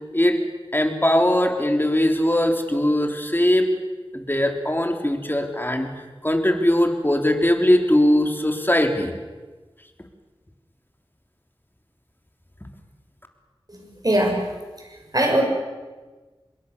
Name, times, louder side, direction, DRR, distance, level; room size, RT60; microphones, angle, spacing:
voice 1, 0.7-3.7 4.1-5.9 6.2-9.1, left 1 dB, 20° left, 4 dB, 3.5 m, -20 dB
voice 2, 13.7-14.5 14.8-15.4, right 1 dB, 40° right, 2 dB, 6.4 m, -22 dB
26.0 x 22.0 x 6.9 m, 1.3 s
wide cardioid pair, 45°, 10 cm